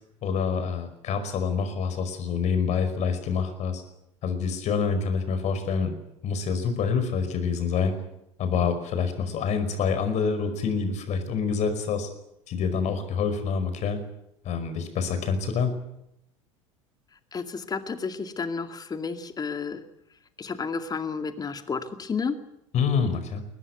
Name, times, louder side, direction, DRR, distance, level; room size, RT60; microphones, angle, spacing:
voice 1, 0.2-3.8 4.2-5.9 6.2-7.9 8.4-12.1 12.5-14.0 14.4-15.8 22.7-23.4, left 6 dB, 45° left, 9 dB, 5.3 m, -26 dB
voice 2, 17.3-19.8 20.4-22.3, left 5 dB, 25° left, 8 dB, 2.3 m, -31 dB
22.5 x 19.5 x 9.5 m, 0.82 s
figure-of-eight pair, 70°, 16 cm